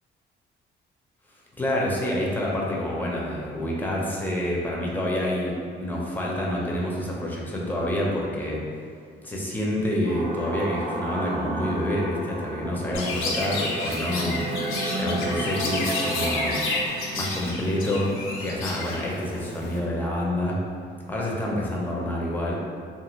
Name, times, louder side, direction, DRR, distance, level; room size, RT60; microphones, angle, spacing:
voice 1, 1.5-8.6 9.2-14.4 15.0-16.6 17.2-18.1 18.4-20.6 21.1-22.5, left 1 dB, 10° left, -4 dB, 0.6 m, -27 dB
sound 1, 10.0-16.9, right 1 dB, 60° right, 0.7 m, -32 dB
Chirp tweet, 12.9-19.8, left 2 dB, 85° left, 0.5 m, -30 dB
2.6 x 2.5 x 3.0 m, 2.2 s
cardioid pair, 90°, 20 cm